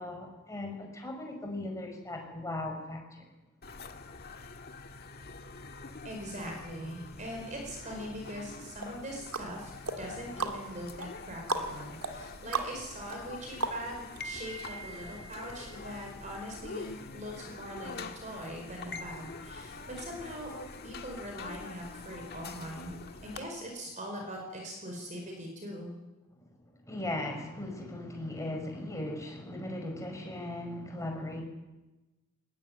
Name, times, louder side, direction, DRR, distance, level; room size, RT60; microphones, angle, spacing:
voice 1, 0.0-3.3 8.9-9.0 26.4-31.4, left 1 dB, 15° left, 2 dB, 5.3 m, -38 dB
sound 1, 3.6-23.4, left 3 dB, 45° left, 1.6 m, -45 dB
voice 2, 6.0-9.7 10.0-20.5 20.8-25.9, equal, 35° right, 2 dB, 5.0 m, -41 dB
sound 2, 8.8-14.2 14.6-14.7, right 3 dB, 85° right, 2.2 m, -37 dB
21.5 x 20.0 x 9.2 m, 1.1 s
head